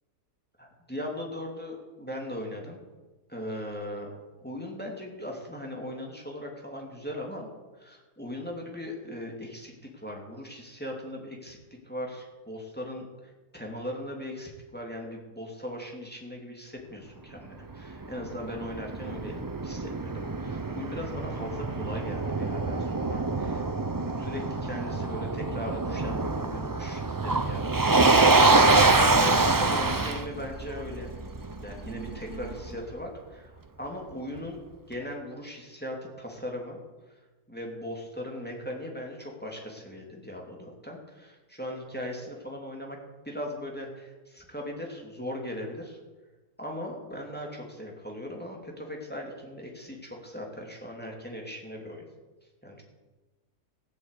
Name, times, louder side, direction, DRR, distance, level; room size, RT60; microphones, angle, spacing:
voice 1, 0.6-2.8 3.3-4.1 4.4-7.5 7.7-11.6 11.8-23.6 24.2-31.1 31.6-34.6 34.9-36.8 37.1-37.2 37.5-43.0 43.2-46.0 46.6-52.0 52.6-52.8, left 1 dB, 5° left, 0 dB, 2.6 m, -39 dB
Motor vehicle (road), 17.7-32.8, right 3 dB, 35° right, 0.3 m, -25 dB
15.5 x 8.3 x 8.2 m, 1.2 s
omnidirectional pair, 1.6 m